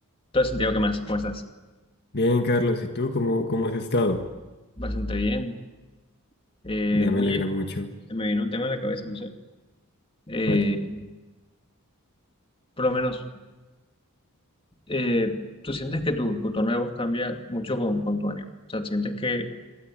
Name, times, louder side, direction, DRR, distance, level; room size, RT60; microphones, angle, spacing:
voice 1, 0.3-1.4 4.8-5.6 6.6-7.4 8.1-9.3 10.3-11.1 12.8-13.2 14.9-19.5, left 1 dB, 25° left, 5 dB, 2.4 m, -26 dB
voice 2, 2.1-4.2 6.9-7.9 10.5-10.6, left 2 dB, 50° left, 5 dB, 1.9 m, -24 dB
26.5 x 24.0 x 9.2 m, 1.2 s
head